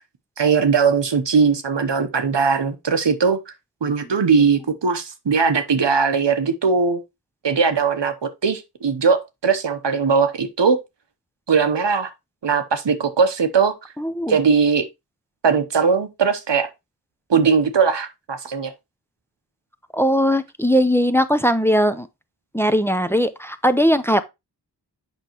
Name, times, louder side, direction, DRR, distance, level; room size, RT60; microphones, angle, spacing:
voice 1, 0.4-3.4 3.8-7.0 7.4-10.8 11.5-12.1 12.4-13.8 14.3-14.9 15.4-16.7 17.3-18.7, right 5 dB, 85° right, 1.0 m, -19 dB
voice 2, 14.0-14.4 19.9-22.1 22.5-24.2, equal, 5° left, 0.7 m, -19 dB
8.1 x 5.6 x 3.0 m
wide cardioid pair, 60°, 42 cm